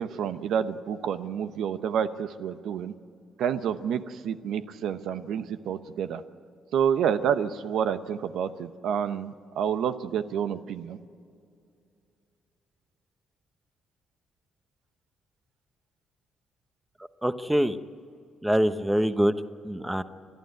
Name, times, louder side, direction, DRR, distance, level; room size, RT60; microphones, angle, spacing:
voice 1, 0.0-2.9 3.4-6.2 6.7-11.0, right 8 dB, 75° right, 11 dB, 0.9 m, -29 dB
voice 2, 17.2-17.8 18.4-19.3 19.6-20.0, equal, 5° right, 11 dB, 0.9 m, -24 dB
30.0 x 12.0 x 9.5 m, 2.4 s
cardioid pair, 90°, 0 cm